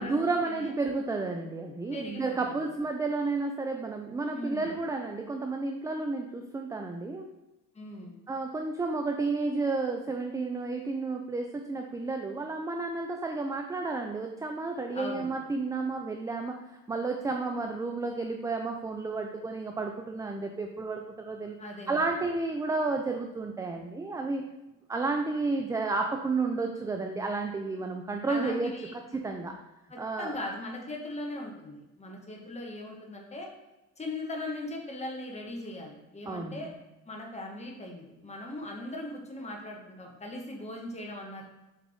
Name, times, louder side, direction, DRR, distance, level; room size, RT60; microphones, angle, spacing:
voice 1, 0.0-7.3 8.3-16.5 16.9-21.6 21.9-24.4 24.9-28.7 29.1-29.6 30.0-30.4 36.3-36.7, right 3 dB, 10° right, 3 dB, 0.3 m, -31 dB
voice 2, 1.9-2.6 4.3-4.7 7.7-8.2 14.9-15.3 21.6-22.0 28.3-29.0 29.9-33.5 34.0-36.7 37.1-41.4, left 1 dB, 20° left, 0 dB, 1.3 m, -39 dB
7.4 x 3.6 x 3.5 m, 0.99 s
cardioid pair, 125°, 34 cm